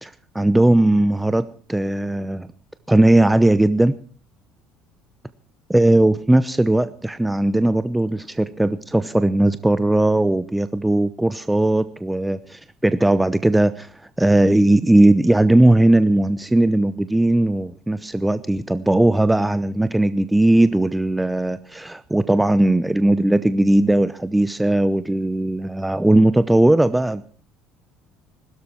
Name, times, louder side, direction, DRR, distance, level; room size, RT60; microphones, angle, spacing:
voice 1, 0.0-2.5 2.9-3.9 5.7-13.9 14.2-27.2, right 1 dB, 10° right, 14 dB, 0.8 m, -18 dB
21.0 x 13.0 x 4.5 m, 0.42 s
figure-of-eight pair, 60°, 0 cm